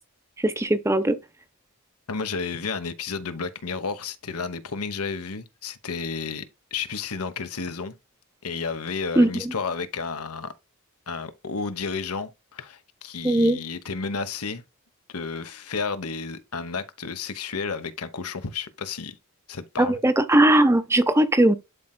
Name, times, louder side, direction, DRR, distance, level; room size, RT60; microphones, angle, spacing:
voice 1, 0.4-1.2 9.2-9.5 13.2-13.6 19.8-21.6, right 1 dB, 10° right, 0.6 m, -19 dB
voice 2, 2.1-6.5 6.7-8.0 8.4-10.5 11.1-14.6 15.1-19.2 19.5-20.0, left 5 dB, 85° left, 1.0 m, -32 dB
11.5 x 4.4 x 2.2 m
head